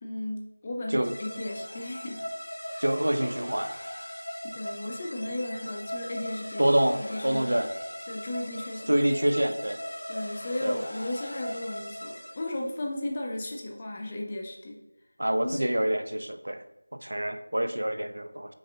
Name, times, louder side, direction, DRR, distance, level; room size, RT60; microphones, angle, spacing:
voice 1, 0.0-2.3 2.7-2.8 4.4-7.7 8.1-9.0 10.1-14.8 15.4-15.8, left 1 dB, 20° left, 0 dB, 0.3 m, -35 dB
sound 1, 1.0-12.7, equal, 70° left, 0.6 m, -39 dB
voice 2, 2.8-3.7 6.6-7.7 8.9-9.8 10.6-10.8 15.2-16.6 17.0-18.5, right 1 dB, 70° right, 8 dB, 0.4 m, -26 dB
5.3 x 2.5 x 2.3 m, 0.96 s
figure-of-eight pair, 175°, 0 cm